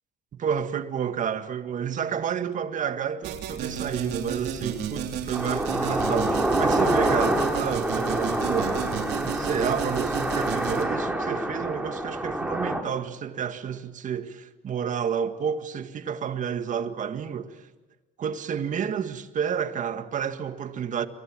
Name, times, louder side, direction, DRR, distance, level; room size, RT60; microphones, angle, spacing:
voice 1, 0.4-17.6 18.2-21.1, right 7 dB, 50° right, 1.8 m, -30 dB
sound 1, 3.2-10.8, right 8 dB, 80° right, 3.3 m, -33 dB
sound 2, 5.3-12.8, right 1 dB, 5° right, 4.0 m, -26 dB
27.5 x 24.0 x 7.6 m
cardioid pair, 110°, 17 cm